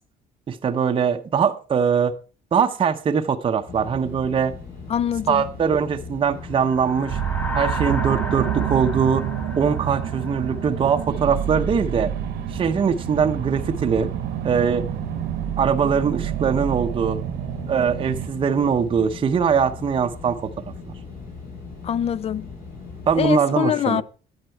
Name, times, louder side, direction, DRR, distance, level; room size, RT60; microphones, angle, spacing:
voice 1, 0.5-2.1 2.5-4.5 5.3-7.2 7.5-9.2 9.6-12.1 12.5-14.1 14.4-14.9 15.6-17.2 17.7-20.5 20.9-21.0 23.1-24.0, right 6 dB, 30° right, 0.7 m, -22 dB
sound 1, 3.7-23.3, left 4 dB, 65° left, 6.0 m, -39 dB
voice 2, 4.9-5.4 21.8-22.5 23.2-24.0, left 9 dB, 35° left, 0.4 m, -23 dB
sound 2, 6.5-11.1, left 2 dB, 10° left, 0.7 m, -34 dB
sound 3, 7.1-18.3, right 11 dB, 80° right, 1.0 m, -28 dB
10.5 x 8.0 x 4.5 m
cardioid pair, 110°, 17 cm